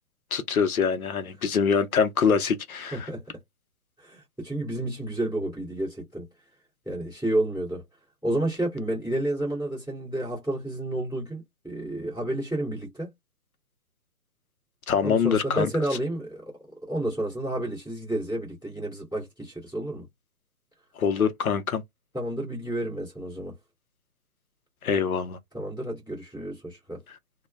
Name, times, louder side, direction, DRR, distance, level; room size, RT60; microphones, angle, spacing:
voice 1, 0.3-3.1 14.9-15.7 21.0-21.8 24.8-25.4, left 6 dB, 65° left, 0.6 m, -24 dB
voice 2, 2.9-3.2 4.0-6.5 6.8-7.8 8.2-13.1 15.0-20.1 22.1-23.5 25.5-27.0, right 1 dB, ahead, 0.7 m, -30 dB
2.2 x 2.2 x 3.2 m
hypercardioid pair, 165°, 47 cm